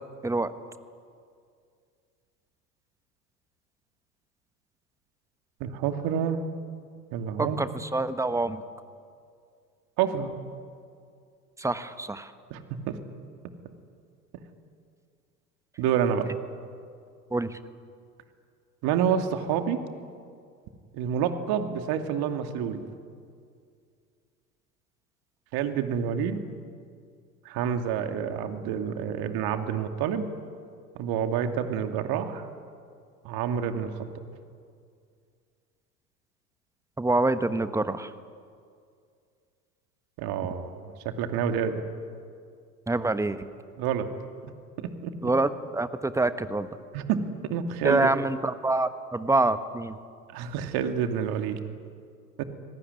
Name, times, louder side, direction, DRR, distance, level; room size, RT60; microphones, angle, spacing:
voice 1, 5.6-6.4 7.1-7.7 10.0-10.3 12.5-13.0 15.8-16.3 18.8-19.8 20.9-22.9 25.5-26.4 27.4-30.2 31.0-32.5 33.2-34.1 40.2-41.8 43.8-44.1 44.4-44.5 44.8-45.1 46.9-48.1 50.3-51.6 52.4-52.5, right 8 dB, 50° right, 6 dB, 2.6 m, -28 dB
voice 2, 7.4-8.6 11.6-12.3 17.3-17.6 37.0-38.1 42.9-43.4 45.2-46.7 47.8-50.0, right 2 dB, 5° right, 12 dB, 1.2 m, -26 dB
26.0 x 19.0 x 9.7 m, 2.2 s
hypercardioid pair, 85°, 48 cm